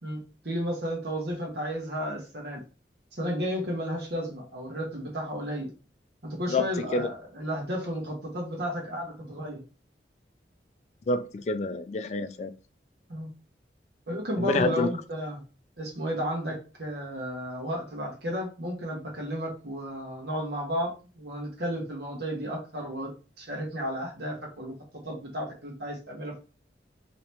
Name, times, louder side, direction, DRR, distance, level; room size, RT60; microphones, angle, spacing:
voice 1, 0.0-2.6 3.2-5.7 6.2-9.6 13.1-13.3 14.1-15.4 15.8-23.1 23.4-24.7 25.0-26.4, equal, 65° right, 0 dB, 1.1 m, -33 dB
voice 2, 6.5-7.1 11.1-12.6 14.4-14.9, left 2 dB, 40° left, 9 dB, 0.3 m, -28 dB
2.9 x 2.8 x 3.3 m, 0.35 s
head